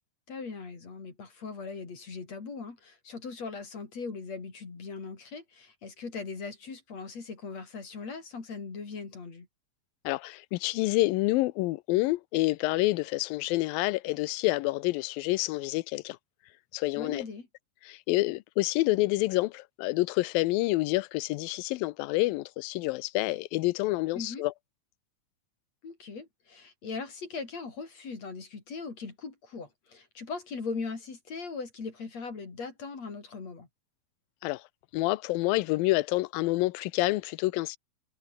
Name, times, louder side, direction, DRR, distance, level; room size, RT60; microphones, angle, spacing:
voice 1, 0.3-9.5 17.0-17.5 24.1-24.4 25.8-33.7, left 4 dB, 50° left, 5.3 m, -39 dB
voice 2, 10.0-16.2 16.7-17.2 17.9-24.5 34.4-34.6 34.9-37.8, left 20 dB, 85° left, 2.5 m, -28 dB
omnidirectional pair, 4.0 m